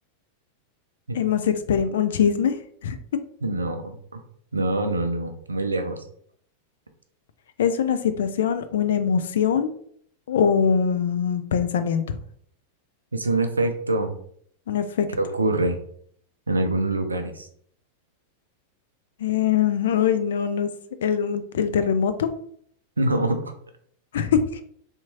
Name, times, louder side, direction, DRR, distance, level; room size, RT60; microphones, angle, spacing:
voice 1, 1.1-2.5 2.8-3.0 7.6-9.7 10.3-12.2 14.7-15.1 19.2-20.7 21.0-22.3 24.1-24.4, left 7 dB, 60° left, 10 dB, 0.3 m, -22 dB
voice 2, 3.4-4.2 4.5-6.0 13.1-14.1 15.1-15.8 16.5-17.5 23.0-23.5, right 2 dB, 80° right, 7 dB, 0.4 m, -25 dB
3.5 x 2.8 x 2.8 m, 0.62 s
figure-of-eight pair, 90°, 0 cm